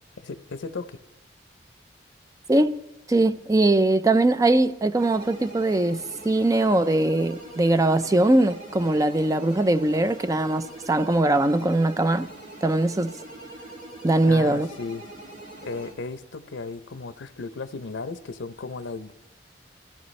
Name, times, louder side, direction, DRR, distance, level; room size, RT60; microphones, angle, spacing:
voice 1, 0.2-1.0 14.3-15.0 15.6-19.1, left 4 dB, 80° left, 0.6 m, -35 dB
voice 2, 3.1-12.3 12.6-13.1 14.0-14.7, right 2 dB, 20° right, 0.4 m, -21 dB
sound 1, 5.0-15.9, right 1 dB, 45° right, 2.7 m, -43 dB
22.0 x 15.0 x 3.2 m
head